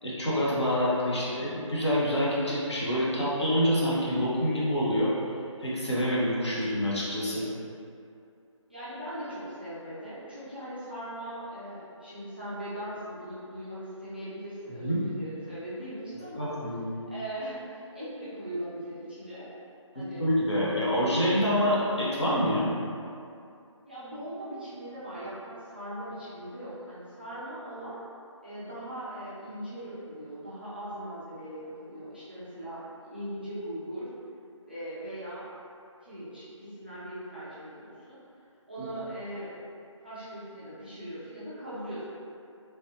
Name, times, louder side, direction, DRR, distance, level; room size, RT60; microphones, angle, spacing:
voice 1, 0.0-5.1 5.6-7.4 14.8-15.0 16.3-16.8 19.9-22.7 38.8-38.9, equal, 60° left, -8 dB, 1.0 m, -27 dB
voice 2, 8.7-16.5 17.1-19.5 19.9-20.3 23.9-28.0 28.4-34.1 34.6-35.5 36.0-38.2 38.7-39.6 40.0-42.0, right 1 dB, 20° right, -12 dB, 0.4 m, -40 dB
3.3 x 2.6 x 2.7 m, 2.5 s
figure-of-eight pair, 155°, 17 cm